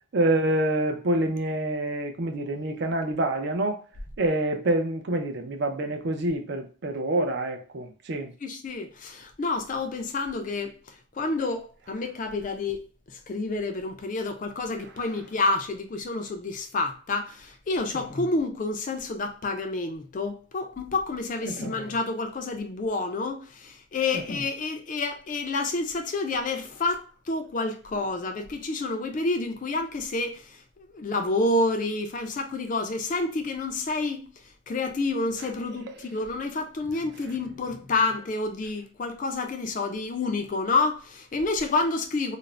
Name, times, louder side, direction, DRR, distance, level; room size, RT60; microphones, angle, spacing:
voice 1, 0.1-3.8 4.2-8.3 21.5-21.7, right 1 dB, 55° right, 0.4 m, -27 dB
voice 2, 8.4-12.8 13.1-42.4, left 3 dB, 40° left, 0.3 m, -29 dB
2.4 x 2.0 x 3.1 m
head